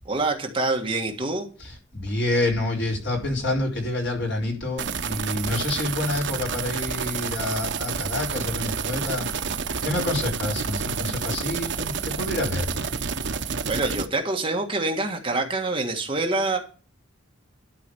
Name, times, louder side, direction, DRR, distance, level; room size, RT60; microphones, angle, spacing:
voice 1, 0.0-1.5 13.7-16.6, right 2 dB, 25° right, 2 dB, 1.6 m, -26 dB
voice 2, 1.6-9.3 9.8-12.7, left 2 dB, 55° left, -1 dB, 4.2 m, -28 dB
sound 1, 4.8-14.1, right 5 dB, 55° right, 0.9 m, -29 dB
12.0 x 5.1 x 6.9 m, 0.38 s
head